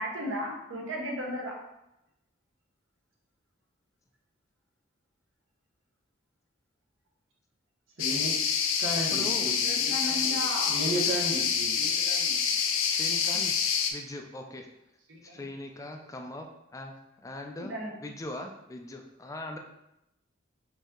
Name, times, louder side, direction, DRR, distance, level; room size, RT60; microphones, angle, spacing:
voice 1, 0.0-1.5 9.6-10.8 11.8-12.4 15.1-15.4 17.6-17.9, equal, 70° right, -1 dB, 1.0 m, -35 dB
sound 1, 8.0-13.9, left 7 dB, 80° left, 0.5 m, -27 dB
voice 2, 8.0-8.3 8.8-9.5 10.7-11.7, right 1 dB, 85° right, -3 dB, 1.2 m, -33 dB
voice 3, 9.1-9.5 10.8-11.0 12.9-13.5 13.9-14.7 15.2-17.7 18.0-19.6, left 1 dB, 15° left, 3 dB, 0.3 m, -40 dB
5.1 x 2.7 x 3.7 m, 0.87 s
head